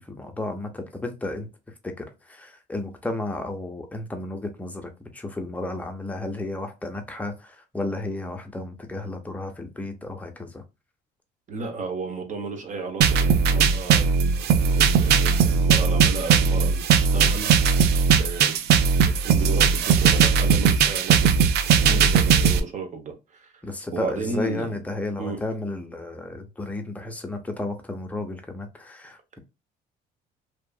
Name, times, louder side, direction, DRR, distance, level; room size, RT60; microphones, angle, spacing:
voice 1, 0.0-10.6 21.8-22.2 23.6-29.4, left 2 dB, 10° left, 0.6 m, -33 dB
voice 2, 11.5-17.5 17.8-23.5 23.9-24.8 25.2-25.4, right 4 dB, 45° right, 0.9 m, -34 dB
sound 1, 13.0-22.6, right 6 dB, 75° right, 0.4 m, -19 dB
2.7 x 2.4 x 2.3 m
cardioid pair, 110°, 17 cm